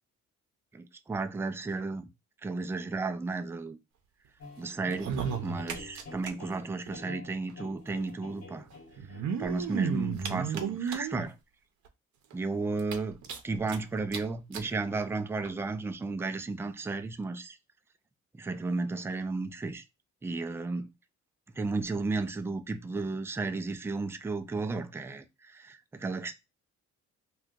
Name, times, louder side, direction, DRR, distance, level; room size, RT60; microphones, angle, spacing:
voice 1, 0.7-2.1 2.4-3.8 4.6-5.2 5.4-8.7 9.4-11.3 12.3-13.2 13.4-17.6 18.3-19.8 20.2-20.9 21.6-26.3, right 3 dB, 10° right, 0.3 m, -33 dB
sound 1, 4.4-9.4, left 2 dB, 55° left, 1.1 m, -48 dB
sound 2, 4.9-6.3 6.6-6.7 6.9-7.0 8.0-8.1 9.0-11.3 11.8-11.9 12.3-12.4 12.8-13.8 14.1-14.2 14.5-14.7 15.4-15.5, right 7 dB, 70° right, 0.7 m, -33 dB
2.7 x 2.3 x 3.5 m
cardioid pair, 90°, 30 cm